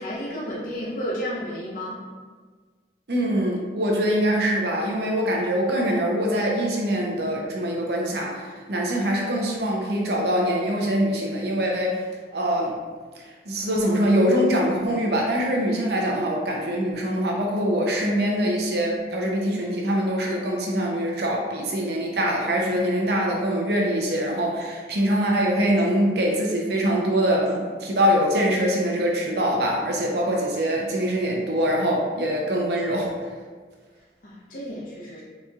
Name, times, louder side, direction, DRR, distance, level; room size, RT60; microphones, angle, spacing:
voice 1, 0.0-2.0 34.2-35.2, equal, 50° left, -6 dB, 0.7 m, -32 dB
voice 2, 3.1-12.0 12.3-12.7 13.5-33.1, equal, 65° right, -1 dB, 0.6 m, -23 dB
3.9 x 2.9 x 2.3 m, 1.5 s
head